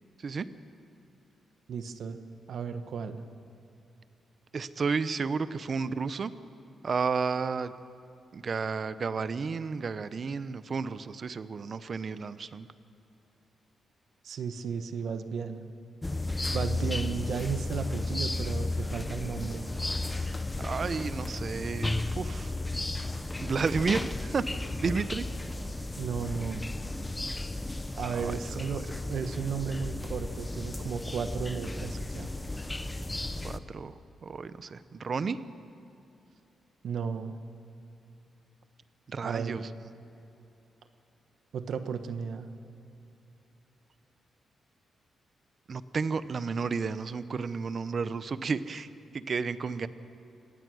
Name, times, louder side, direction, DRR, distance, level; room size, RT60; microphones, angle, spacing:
voice 1, 1.7-2.2 2.5-3.2 14.2-15.6 16.5-19.7 26.0-26.7 27.9-32.3 36.8-37.3 39.2-39.6 41.5-42.5, right 6 dB, 60° right, 9 dB, 1.1 m, -34 dB
voice 2, 4.5-6.3 6.8-7.7 8.3-12.7 20.6-22.5 23.4-24.5 24.8-25.2 28.1-28.3 33.4-33.9 34.2-35.4 39.1-39.6 45.7-49.9, right 5 dB, 35° right, 14 dB, 0.7 m, -32 dB
sound 1, 16.0-33.6, left 2 dB, 10° left, 0.7 m, -34 dB
25.0 x 18.5 x 6.3 m, 2.8 s
wide cardioid pair, 160°, 0 cm